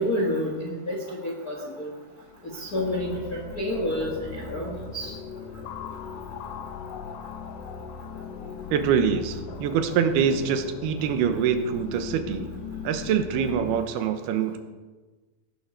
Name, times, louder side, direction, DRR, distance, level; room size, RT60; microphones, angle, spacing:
voice 1, 0.0-1.9 2.5-5.1, equal, 50° left, -1 dB, 1.1 m, -29 dB
sound 1, 2.2-13.8, left 5 dB, 75° left, 2.0 m, -38 dB
voice 2, 8.7-12.5 12.8-14.6, right 7 dB, 85° right, 8 dB, 2.9 m, -24 dB
17.5 x 11.0 x 4.4 m, 1.3 s
omnidirectional pair, 4.4 m